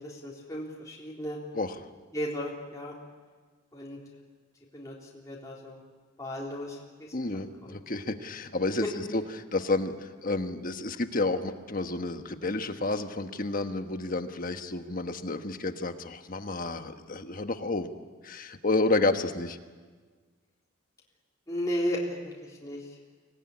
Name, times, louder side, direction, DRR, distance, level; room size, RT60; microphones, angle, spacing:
voice 1, 0.0-1.4 2.1-3.0 3.7-4.0 4.7-5.8 6.2-7.1 7.6-7.8 21.5-22.9, equal, 15° left, -4 dB, 3.7 m, -35 dB
voice 2, 7.1-8.8 9.1-17.9 18.2-19.6, left 2 dB, 45° left, 8 dB, 1.3 m, -30 dB
25.0 x 19.0 x 9.8 m, 1.4 s
head